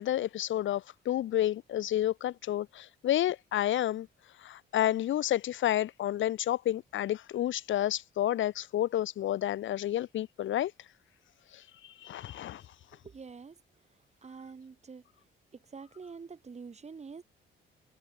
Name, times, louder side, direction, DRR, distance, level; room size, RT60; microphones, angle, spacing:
voice 1, 0.0-4.1 4.4-10.7 12.0-12.6, left 12 dB, 75° left, 2.2 m, -30 dB
voice 2, 13.0-13.6 14.2-15.0 15.7-17.2, right 5 dB, 35° right, 3.4 m, -46 dB
cardioid pair, 90°, 20 cm